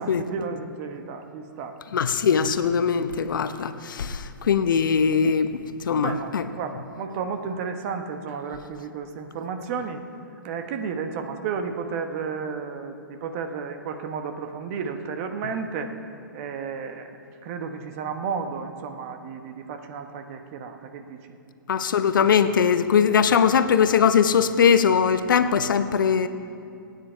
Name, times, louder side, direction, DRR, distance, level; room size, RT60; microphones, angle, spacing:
voice 1, 0.0-1.8 6.0-10.0 10.4-15.9 16.3-17.1 17.4-21.2, right 5 dB, 40° right, 7 dB, 1.2 m, -32 dB
voice 2, 1.9-5.6 5.9-6.4 21.7-26.3, left 7 dB, 70° left, 10 dB, 0.8 m, -21 dB
21.0 x 9.4 x 4.5 m, 2.6 s
hypercardioid pair, 130°, 11 cm